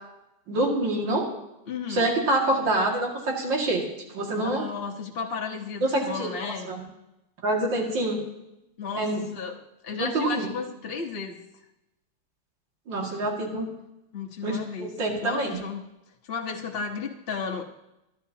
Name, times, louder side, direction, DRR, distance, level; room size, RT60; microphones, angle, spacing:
voice 1, 0.5-1.2 1.9-3.8 4.1-4.6 5.8-6.3 6.7-6.8 7.4-8.2 9.0-9.2 10.0-10.5 12.9-13.7 14.4-15.6, right 2 dB, 85° right, 0 dB, 3.0 m, -26 dB
voice 2, 1.7-2.1 4.3-6.7 8.8-9.6 9.8-11.4 14.1-14.9 15.2-15.8 16.3-17.6, left 5 dB, 40° left, 1 dB, 1.2 m, -33 dB
24.5 x 11.0 x 2.9 m, 0.91 s
omnidirectional pair, 2.0 m